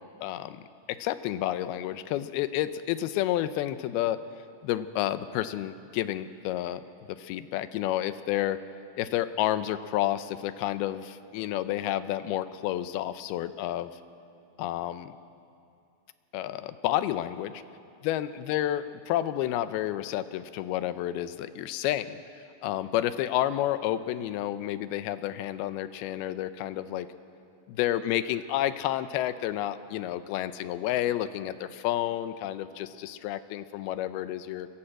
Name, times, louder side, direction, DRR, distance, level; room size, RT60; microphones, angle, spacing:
voice 1, 0.2-4.2 4.6-8.6 9.0-13.9 14.6-15.1 16.3-17.6 18.0-27.1 27.7-34.7, left 13 dB, 85° left, 13 dB, 2.6 m, -30 dB
22.5 x 16.0 x 7.7 m, 2.5 s
omnidirectional pair, 4.4 m